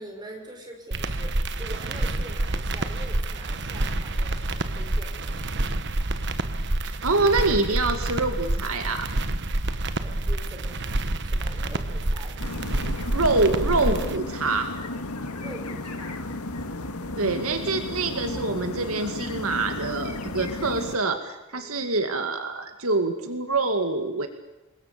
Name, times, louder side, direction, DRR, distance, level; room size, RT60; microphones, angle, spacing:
voice 1, 0.0-5.8 10.0-12.5 15.4-16.3 21.5-21.8, right 1 dB, 20° right, 2 dB, 5.5 m, -44 dB
sound 1, 0.9-14.2, right 1 dB, 50° right, 1.3 m, -28 dB
voice 2, 6.8-9.1 13.1-14.7 17.2-24.3, right 3 dB, 75° right, 6 dB, 2.2 m, -25 dB
sound 2, 12.4-21.0, left 2 dB, 85° left, 2.0 m, -34 dB
28.5 x 21.5 x 6.9 m, 0.98 s
head